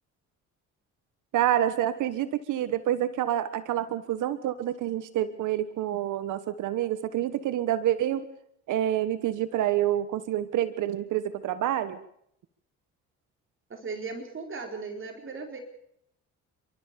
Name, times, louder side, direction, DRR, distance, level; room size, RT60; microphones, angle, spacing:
voice 1, 1.3-8.2 8.7-12.0, right 12 dB, 80° right, 13 dB, 1.3 m, -27 dB
voice 2, 13.7-15.6, right 4 dB, 40° right, 4 dB, 4.2 m, -37 dB
29.5 x 13.0 x 6.9 m, 0.73 s
cardioid pair, 90°, 30 cm